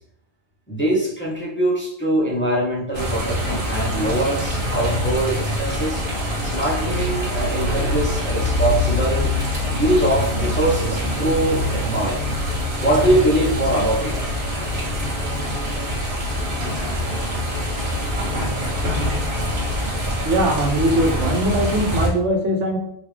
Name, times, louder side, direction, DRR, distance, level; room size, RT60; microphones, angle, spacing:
voice 1, 0.7-6.0 6.4-9.3 9.7-12.3 12.8-14.3, right 1 dB, 10° left, -5 dB, 0.9 m, -22 dB
sound 1, 2.9-22.1, left 1 dB, 50° right, 1.3 m, -24 dB
voice 2, 20.2-22.8, right 1 dB, 90° right, 3 dB, 1.1 m, -20 dB
5.4 x 2.9 x 3.3 m, 0.74 s
omnidirectional pair, 1.2 m